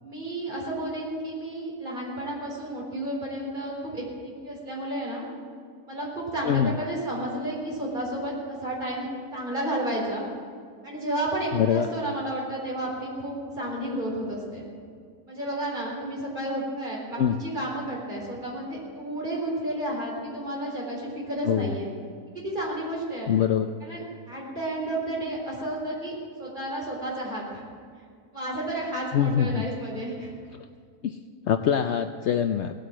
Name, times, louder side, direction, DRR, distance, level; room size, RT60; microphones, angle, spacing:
voice 1, 0.0-5.3 5.9-10.3 10.8-14.7 15.3-21.9 22.3-23.3 23.8-27.6 28.3-30.3, right 1 dB, 30° right, -3 dB, 4.2 m, -32 dB
voice 2, 11.5-11.9 17.2-17.4 21.5-21.7 23.3-23.7 29.1-29.7 30.5-30.6 31.0-31.2 31.5-32.7, left 9 dB, 80° left, 9 dB, 0.6 m, -24 dB
18.0 x 9.0 x 7.6 m, 2.1 s
omnidirectional pair, 1.7 m